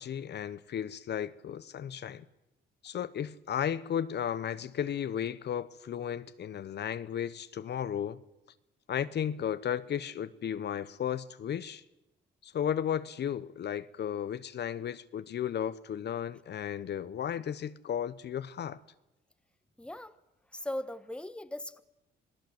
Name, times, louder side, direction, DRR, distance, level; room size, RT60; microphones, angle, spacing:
voice 1, 0.0-2.2 2.8-8.2 8.9-11.8 12.4-18.8, left 9 dB, 60° left, 1.0 m, -34 dB
voice 2, 19.8-20.2 20.5-21.8, left 1 dB, 5° left, 1.3 m, -39 dB
26.5 x 19.5 x 7.9 m
cardioid pair, 90°, 20 cm